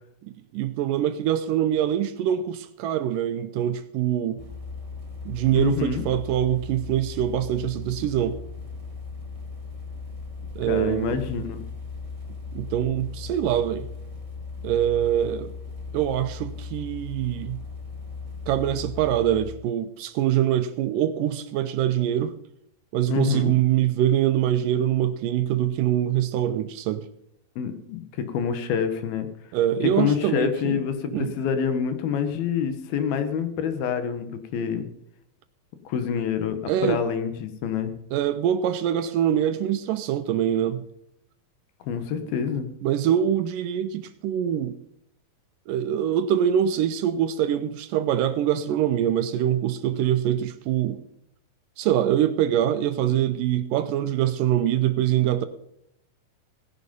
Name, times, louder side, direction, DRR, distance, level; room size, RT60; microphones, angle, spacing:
voice 1, 0.2-4.4 5.3-8.4 10.6-11.2 12.5-13.9 14.6-15.5 15.9-17.6 18.5-22.4 22.9-27.1 29.5-30.8 31.1-31.3 36.7-37.0 38.1-40.8 42.8-44.8 45.7-51.0 51.8-55.5, right 11 dB, 75° right, 2.1 m, -24 dB
sound 1, 4.4-19.5, left 4 dB, 15° right, 1.4 m, -37 dB
voice 2, 5.5-6.0 10.7-11.6 23.1-23.5 27.6-29.3 30.0-34.9 35.9-37.9 41.9-42.7, left 7 dB, 80° left, 3.2 m, -27 dB
17.5 x 10.5 x 5.3 m
omnidirectional pair, 4.3 m